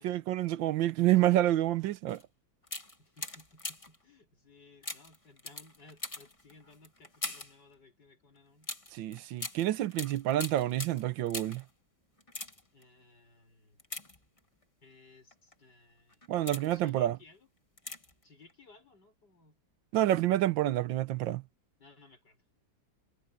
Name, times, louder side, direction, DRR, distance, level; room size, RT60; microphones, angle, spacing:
voice 1, 0.0-2.2 8.9-11.6 16.3-17.2 19.9-21.4, right 13 dB, 85° right, 1.5 m, -28 dB
sound 1, 2.1-2.2 2.6-4.0 4.8-7.6 8.6-11.7 12.2-12.8 13.8-14.6 15.3-15.5 16.1-16.9 17.8-18.2 18.5-18.6, left 2 dB, 15° left, 1.9 m, -42 dB
voice 2, 3.0-8.7 12.7-13.8 14.8-16.3 16.7-17.5 18.2-19.6 21.8-22.4, left 3 dB, 60° left, 6.9 m, -59 dB
omnidirectional pair, 2.0 m